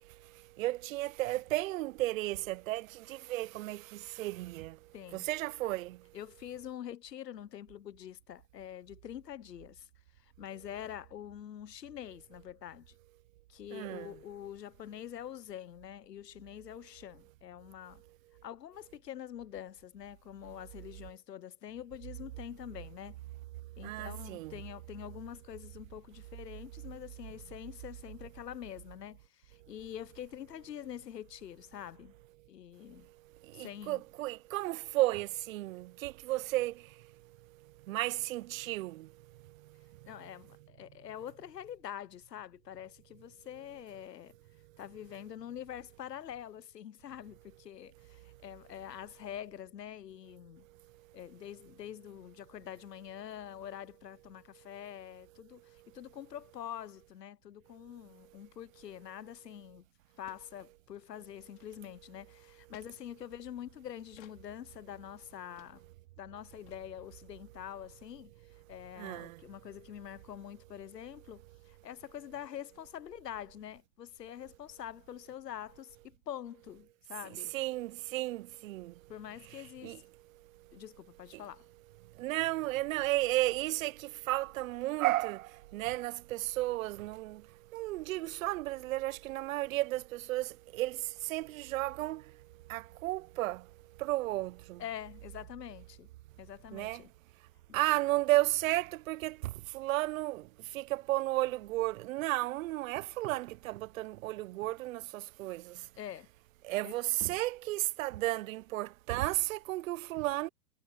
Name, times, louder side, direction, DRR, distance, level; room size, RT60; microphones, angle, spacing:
voice 1, 0.6-4.7 5.1-6.0 13.7-14.1 23.8-24.6 33.6-36.7 37.9-39.1 69.0-69.4 77.5-78.9 79.8-80.0 82.2-87.4 87.7-91.0 91.3-92.2 92.7-93.6 94.0-94.8 96.7-97.0 97.7-100.4 100.7-105.7 106.6-110.5, right 18 dB, 55° right, 0.8 m, -33 dB
voice 2, 4.9-5.2 6.1-9.9 10.2-12.9 13.5-18.0 18.4-23.2 23.8-32.1 32.5-33.1 33.5-34.0 40.1-44.4 44.8-50.7 51.1-59.8 60.2-65.8 66.2-68.3 68.7-77.5 79.1-80.0 80.7-81.7 94.8-96.1 96.4-97.1 106.0-106.3 106.8-106.9, left 10 dB, 85° left, 1.3 m, -45 dB
sound 1, 59.5-59.6 59.8-59.9 60.3-60.5 60.8-61.0 61.4-62.1 62.7-62.9 64.2-64.4 64.9-65.0 65.6-65.7 66.0-66.1 66.3-66.4 66.7-66.8, left 25 dB, 50° left, 2.8 m, -60 dB
hypercardioid pair, 120°, 48 cm